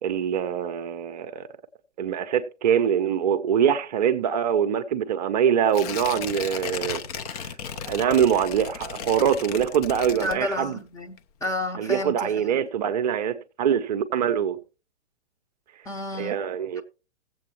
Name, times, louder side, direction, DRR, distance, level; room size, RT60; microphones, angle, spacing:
voice 1, 0.0-1.5 2.0-7.0 7.4-7.5 7.8-10.8 11.8-14.6 16.2-16.8, right 8 dB, 35° right, 0.7 m, -24 dB
Tearing, 5.7-10.8 11.2-11.3, left 7 dB, 35° left, 0.7 m, -35 dB
voice 2, 10.1-12.6 15.8-16.4, left 1 dB, 10° left, 0.8 m, -31 dB
17.5 x 7.8 x 2.9 m
figure-of-eight pair, 115°, 35 cm